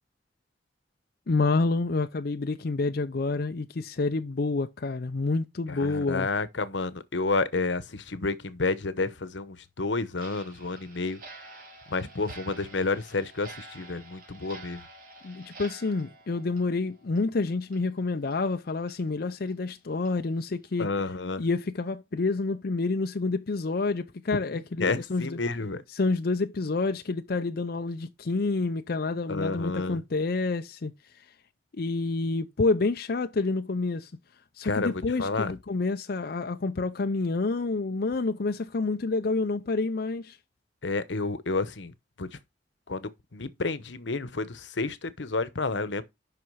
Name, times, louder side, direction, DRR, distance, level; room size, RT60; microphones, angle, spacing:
voice 1, 1.3-6.3 15.2-20.9 21.4-25.4 25.9-31.3 31.7-34.1 34.5-40.4, left 3 dB, 55° left, 0.5 m, -28 dB
voice 2, 5.7-11.2 11.9-14.8 20.8-21.4 24.8-25.8 29.3-30.0 34.6-35.5 40.8-41.9 42.2-42.3 42.9-46.0, left 3 dB, 85° left, 1.0 m, -30 dB
Clock, 10.1-17.4 17.7-17.8 18.3-18.4 18.9-19.0 19.5-19.6 20.1-20.2 20.6-20.8, right 3 dB, 50° right, 3.0 m, -49 dB
7.9 x 5.8 x 5.5 m
head